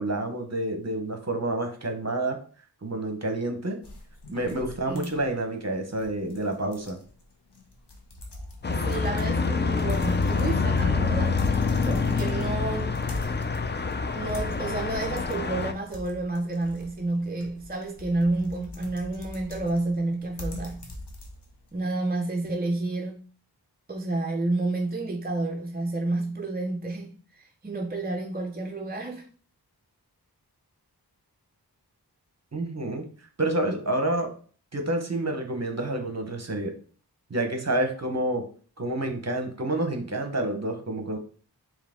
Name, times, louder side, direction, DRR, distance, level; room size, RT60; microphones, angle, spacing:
voice 1, 0.0-2.4 2.8-3.8 4.3-7.0 32.5-33.1 33.4-34.3 34.7-36.7 37.3-38.5 38.8-41.2, right 1 dB, 40° right, 1.0 m, -28 dB
sound 1, 3.8-21.7, left 1 dB, 80° left, 1.0 m, -43 dB
voice 2, 4.9-5.2 8.7-11.4 11.9-13.0 14.1-20.9 21.7-23.3 23.9-27.1 27.6-29.3, right 2 dB, 25° right, 0.5 m, -30 dB
sound 2, 8.6-15.7, left 4 dB, 30° left, 0.4 m, -26 dB
4.6 x 3.1 x 3.5 m
wide cardioid pair, 50°, 40 cm